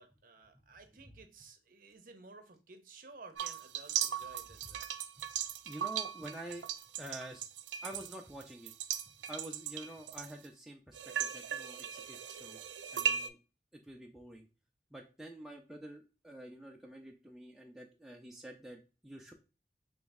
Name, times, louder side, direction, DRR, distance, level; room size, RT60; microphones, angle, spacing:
voice 1, 0.0-4.9, right 3 dB, 50° right, 6 dB, 0.6 m, -55 dB
sound 1, 3.4-10.5 10.9-13.3, right 9 dB, 90° right, 0.4 m, -38 dB
voice 2, 5.7-6.7 7.0-7.4 7.8-8.7 9.1-12.6 12.9-13.4 13.7-14.5 14.9-19.3, right 1 dB, ahead, 0 dB, 0.3 m, -48 dB
3.1 x 3.0 x 3.4 m, 0.31 s
head